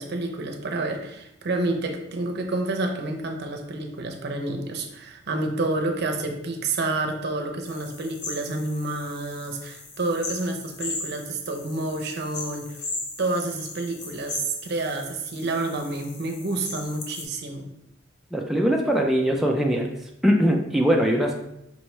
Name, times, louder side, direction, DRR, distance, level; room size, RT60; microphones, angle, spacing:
voice 1, 0.0-12.9 13.2-17.7, right 2 dB, 55° right, 4 dB, 0.6 m, -29 dB
sound 1, 7.7-17.2, left 3 dB, 65° left, 0.8 m, -38 dB
voice 2, 18.3-19.9 20.2-21.4, equal, ahead, 0 dB, 0.3 m, -21 dB
5.3 x 3.2 x 3.0 m, 0.83 s
head